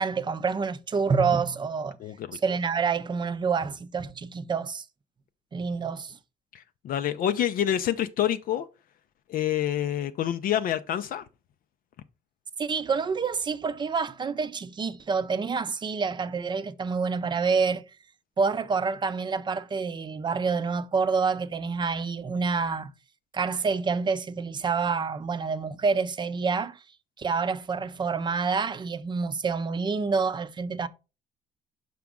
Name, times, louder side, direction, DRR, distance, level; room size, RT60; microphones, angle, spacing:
voice 1, 0.0-2.0 2.3-4.8 5.5-6.2 12.6-17.8 18.4-22.9 23.3-26.8 27.2-30.9, right 5 dB, 25° right, 0.5 m, -27 dB
voice 2, 2.0-2.4 6.5-8.6 9.3-11.3, left 11 dB, 55° left, 0.5 m, -27 dB
5.9 x 5.0 x 3.6 m
cardioid pair, 110°, 17 cm